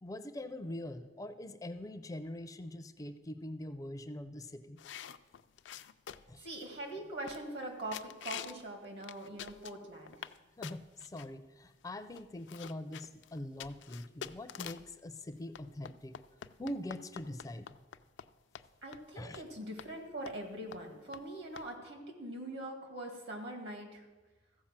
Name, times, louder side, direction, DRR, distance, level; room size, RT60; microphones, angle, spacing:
voice 1, 0.0-4.8 6.3-6.5 10.6-16.2 16.6-17.8 19.2-19.4, left 1 dB, 20° left, 9 dB, 0.4 m, -43 dB
sound 1, 4.8-6.4 6.9-7.0 7.3-7.6 7.9-8.6 9.0-10.4 10.6-11.3 11.9-12.0 12.1-14.9 15.5-18.3 18.5-18.7 18.9-19.0 19.3-19.5 19.8-19.9 20.3-20.5 20.7-20.8 21.1-21.2 21.6-21.7, left 9 dB, 85° left, 0.4 m, -46 dB
voice 2, 6.4-10.2 18.8-24.1, right 1 dB, 65° right, 3 dB, 2.0 m, -43 dB
14.5 x 4.9 x 7.3 m, 1.2 s
head